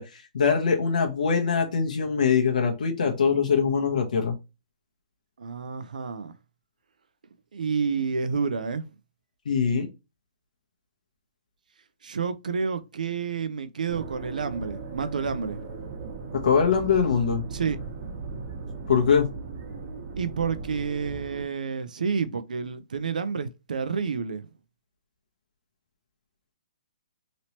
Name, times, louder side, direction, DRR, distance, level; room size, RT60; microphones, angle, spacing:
voice 1, 0.0-4.3 9.5-9.9 16.3-17.4 18.9-19.3, left 6 dB, 75° left, 0.8 m, -23 dB
voice 2, 5.4-6.3 7.5-8.9 12.0-15.6 17.5-17.8 20.2-24.5, right 5 dB, 85° right, 0.5 m, -29 dB
sound 1, 13.9-21.5, right 4 dB, 45° right, 1.0 m, -38 dB
3.0 x 2.9 x 2.8 m
hypercardioid pair, 150°, 4 cm